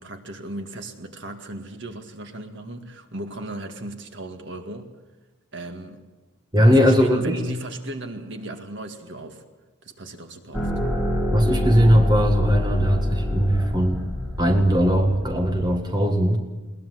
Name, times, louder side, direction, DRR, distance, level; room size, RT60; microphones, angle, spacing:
voice 1, 0.0-4.9 5.5-6.0 6.6-9.4 9.8-10.7, right 1 dB, 55° right, 5 dB, 2.1 m, -36 dB
voice 2, 6.5-7.4 11.3-14.0 14.4-16.4, equal, 20° right, 3 dB, 1.8 m, -19 dB
sound 1, 10.5-15.8, left 1 dB, 5° left, 3.4 m, -27 dB
21.0 x 19.5 x 8.0 m, 1.1 s
head